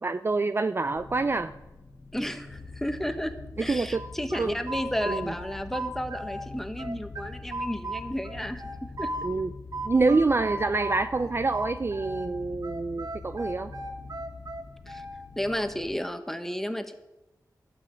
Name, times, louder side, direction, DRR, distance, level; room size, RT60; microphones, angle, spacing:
voice 1, 0.0-1.5 3.6-4.0 4.4-4.6 5.1-5.3 9.2-9.5 9.8-13.7, right 3 dB, 35° right, 11 dB, 0.4 m, -26 dB
sound 1, 0.9-16.0, left 3 dB, 45° left, 1.5 m, -47 dB
voice 2, 2.1-8.6 9.0-9.1 14.9-15.0 15.4-16.9, equal, 5° left, 8 dB, 1.0 m, -32 dB
sound 2, 2.5-14.6, left 4 dB, 85° left, 0.5 m, -46 dB
sound 3, 3.9-6.5 6.8-9.3 9.7-12.3 12.6-15.3, right 1 dB, 60° right, 1.7 m, -36 dB
12.5 x 6.1 x 9.0 m, 0.99 s
wide cardioid pair, 90°, 7 cm